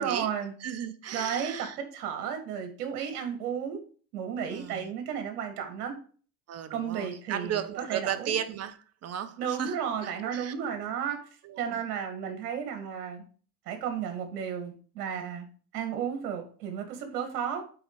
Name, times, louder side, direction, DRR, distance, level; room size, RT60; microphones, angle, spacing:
voice 1, 0.0-0.5 1.1-3.8 4.1-6.0 6.7-8.4 9.4-11.2 11.6-13.2 13.7-15.5 15.7-17.6, right 8 dB, 80° right, 2.1 m, -33 dB
voice 2, 0.6-1.8 4.5-4.9 6.5-10.7 11.4-11.8, right 9 dB, 35° right, 0.9 m, -35 dB
8.8 x 4.1 x 4.8 m
supercardioid pair, 110°, 46 cm